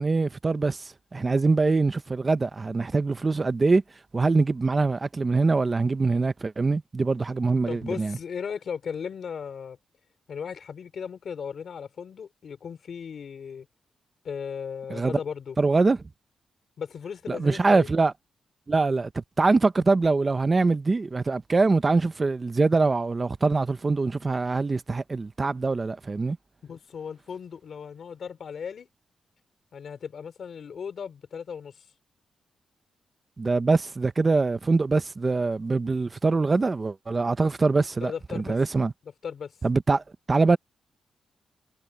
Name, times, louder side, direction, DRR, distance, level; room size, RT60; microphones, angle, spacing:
voice 1, 0.0-3.8 4.1-8.2 14.9-15.2 15.6-16.0 17.3-18.1 18.7-26.4 33.4-38.9 39.6-40.0 40.3-40.6, right 3 dB, 25° right, 0.6 m, -23 dB
voice 2, 7.7-9.8 10.3-13.7 14.2-15.6 16.8-17.9 26.6-28.9 29.7-31.8 38.0-38.6 39.2-39.5, left 7 dB, 60° left, 3.0 m, -36 dB
wide cardioid pair, 140°, 0 cm